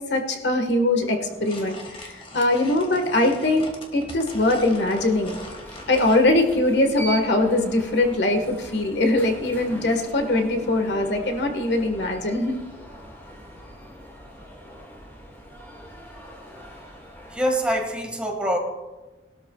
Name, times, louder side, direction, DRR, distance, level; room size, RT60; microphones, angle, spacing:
voice 1, 0.1-5.4 5.9-12.6, left 2 dB, 80° left, 4 dB, 1.5 m, -22 dB
sound 1, 1.0-6.3, left 2 dB, 30° left, 1.7 m, -41 dB
Alarm, 4.0-18.0, right 1 dB, 15° left, 1.9 m, -42 dB
voice 2, 17.3-18.6, equal, 5° right, 1 dB, 1.8 m, -24 dB
20.5 x 12.5 x 2.3 m, 1.2 s
head